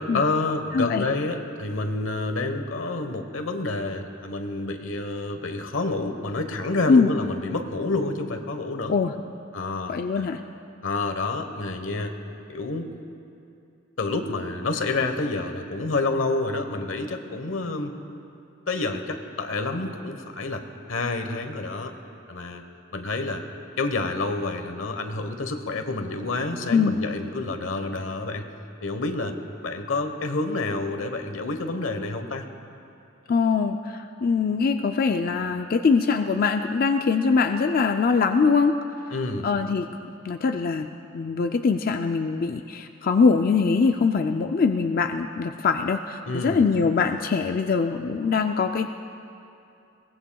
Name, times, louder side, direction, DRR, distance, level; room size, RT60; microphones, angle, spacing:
voice 1, 0.0-8.9 9.5-10.3 10.8-12.1 12.5-12.9 14.0-17.9 18.7-21.9 22.3-22.6 22.9-23.4 23.8-28.4 28.8-29.4 29.6-32.4 39.1-39.5 46.2-46.6, left 3 dB, 90° left, 6 dB, 1.1 m, -28 dB
voice 2, 0.7-1.1 6.9-7.1 8.9-9.1 9.9-10.4 26.7-27.0 33.3-38.8 39.4-39.9 40.2-40.9 41.1-48.9, left 5 dB, 50° left, 6 dB, 0.4 m, -22 dB
22.0 x 19.0 x 2.3 m, 2.6 s
head